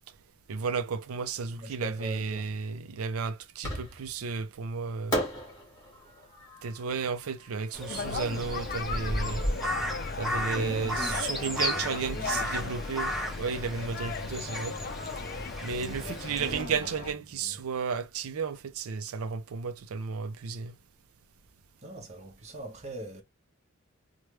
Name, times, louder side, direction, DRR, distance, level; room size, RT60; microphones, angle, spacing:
voice 1, 0.5-5.2 6.6-9.4 10.2-14.8 15.6-20.7, right 5 dB, 90° right, 0.5 m, -33 dB
voice 2, 1.5-2.5 10.4-12.8 15.7-16.9 17.4-17.5 21.8-23.2, equal, 30° right, 0.8 m, -42 dB
Fireworks, 3.6-4.3 5.1-8.2, equal, 15° left, 1.3 m, -36 dB
Crow, 7.7-16.6, equal, ahead, 0.8 m, -34 dB
sound 1, 7.9-17.1, left 4 dB, 45° left, 0.4 m, -37 dB
3.3 x 2.2 x 3.0 m
head